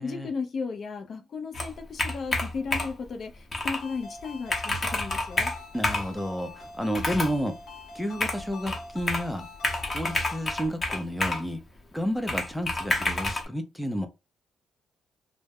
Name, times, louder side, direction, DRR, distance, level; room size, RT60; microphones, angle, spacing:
voice 1, 0.0-5.5, left 5 dB, 50° left, 0.5 m, -35 dB
Computer keyboard, 1.5-3.0 3.5-3.8 4.2-4.3 4.5-6.1 6.9-7.4 8.2-9.3 9.6-11.5 12.3-13.4, left 2 dB, 30° left, 0.9 m, -29 dB
Ringtone, 3.8-10.7, left 2 dB, 75° left, 0.9 m, -44 dB
voice 2, 5.7-7.6 7.9-9.5 9.9-11.6 11.9-14.1, equal, ahead, 0.5 m, -31 dB
2.2 x 2.0 x 3.4 m
cardioid pair, 90°, 0 cm